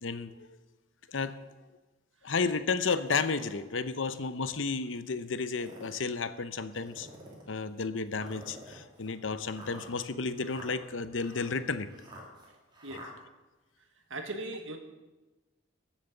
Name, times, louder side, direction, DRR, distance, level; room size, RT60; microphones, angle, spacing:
voice 1, 0.0-0.3 1.1-1.4 2.2-7.1 7.5-11.9, left 4 dB, 70° left, 12 dB, 0.8 m, -32 dB
sound 1, 2.9-3.6 4.2-4.3 5.3-6.0 6.7-7.5 8.1-13.1, right 1 dB, 25° right, 3.1 m, -50 dB
voice 2, 14.1-14.8, right 2 dB, 75° right, 5 dB, 1.7 m, -38 dB
14.5 x 7.5 x 6.7 m, 1.2 s
head